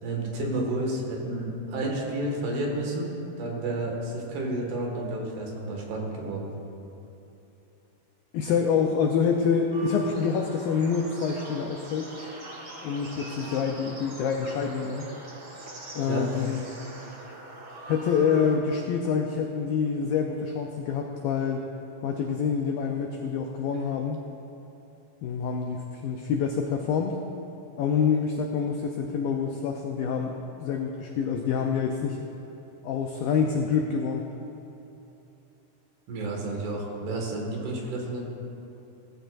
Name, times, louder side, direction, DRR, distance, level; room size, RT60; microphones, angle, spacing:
voice 1, 0.0-3.1 3.4-6.5 16.1-16.3 36.1-38.3, right 2 dB, 70° right, -1 dB, 3.9 m, -31 dB
voice 2, 8.3-12.1 12.8-15.1 16.0-16.6 17.9-21.7 22.0-24.2 25.2-27.2 27.8-32.2 32.8-34.3, left 6 dB, 85° left, 2 dB, 2.0 m, -27 dB
sound 1, 9.7-18.6, right 1 dB, 90° right, 0.8 m, -43 dB
18.5 x 15.0 x 2.6 m, 3.0 s
omnidirectional pair, 5.0 m